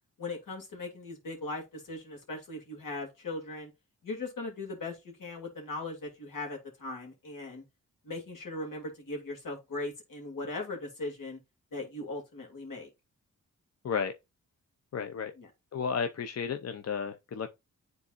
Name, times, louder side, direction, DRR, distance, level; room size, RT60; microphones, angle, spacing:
voice 1, 0.2-3.7 4.0-7.6 8.0-11.4 11.7-12.9 15.4-15.5, left 2 dB, 75° left, 2.5 m, -39 dB
voice 2, 14.9-15.3 15.7-17.5, left 6 dB, 50° left, 0.6 m, -33 dB
9.6 x 4.0 x 2.5 m
cardioid pair, 65°, 33 cm